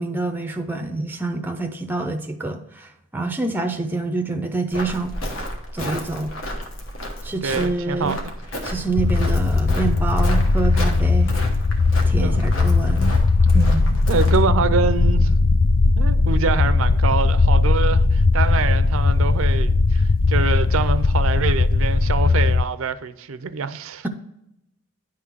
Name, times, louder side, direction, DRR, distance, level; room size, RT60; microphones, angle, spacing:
voice 1, 0.0-5.1 5.7-6.3 7.2-8.2 8.6-11.3 12.0-13.2 13.5-13.9, right 3 dB, 10° right, 0.5 m, -26 dB
Walk footsteps, 4.7-14.5, equal, 75° left, 1.2 m, -32 dB
voice 2, 7.4-8.3 12.2-12.4 14.1-15.3 16.0-24.1, right 5 dB, 75° right, 0.5 m, -25 dB
sound 1, 9.0-22.6, left 3 dB, 40° left, 0.3 m, -18 dB
10.0 x 3.7 x 6.0 m
head